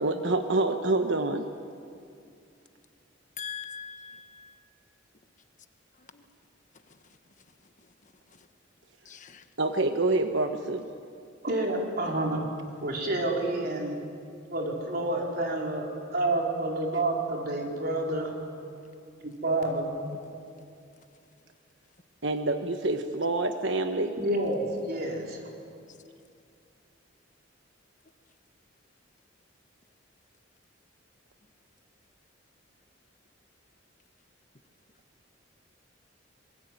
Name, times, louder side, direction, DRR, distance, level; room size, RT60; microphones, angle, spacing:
voice 1, 0.0-1.5 9.6-10.9 22.2-24.2, right 2 dB, 70° right, 6 dB, 1.2 m, -27 dB
voice 2, 3.4-4.5 9.1-9.4 20.0-20.2, left 6 dB, 40° left, 8 dB, 1.3 m, -40 dB
voice 3, 11.4-12.5 12.8-14.0 14.5-15.9 16.1-18.3 19.2-19.9 24.2-25.4, right 2 dB, 55° right, 0 dB, 4.7 m, -29 dB
27.5 x 22.0 x 9.2 m, 2.4 s
head